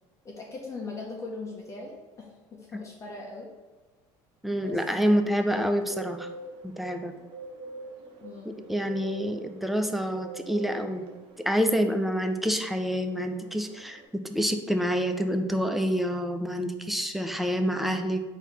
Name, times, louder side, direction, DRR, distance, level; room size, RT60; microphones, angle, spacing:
voice 1, 0.2-3.5 4.5-4.8 5.0-5.7 8.2-8.6, left 3 dB, 25° left, -2 dB, 0.7 m, -40 dB
voice 2, 4.4-6.3 6.6-7.1 8.5-11.0 11.5-14.0 14.2-18.2, equal, ahead, 6 dB, 0.3 m, -27 dB
Bird, 5.8-14.1, right 3 dB, 50° right, 0.8 m, -45 dB
4.1 x 2.7 x 4.6 m, 1.2 s
cardioid pair, 135°, 11 cm